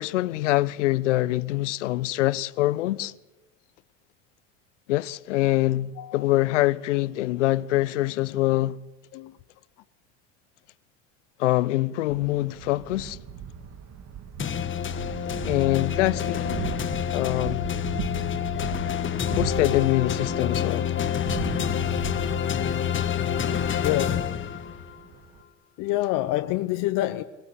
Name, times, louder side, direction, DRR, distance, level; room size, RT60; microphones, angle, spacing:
voice 1, 0.0-3.1 4.9-8.8 11.4-13.2 15.4-16.5 17.1-17.7 19.3-20.9, left 17 dB, 80° left, 0.8 m, -24 dB
voice 2, 6.0-6.3 9.1-9.4 23.8-24.5 25.8-27.2, left 15 dB, 60° left, 1.0 m, -27 dB
Thunder, 12.1-25.4, right 7 dB, 45° right, 2.4 m, -38 dB
sound 1, 14.4-25.0, left 9 dB, 35° left, 1.5 m, -28 dB
24.0 x 19.5 x 8.3 m
hypercardioid pair, 80°, 36 cm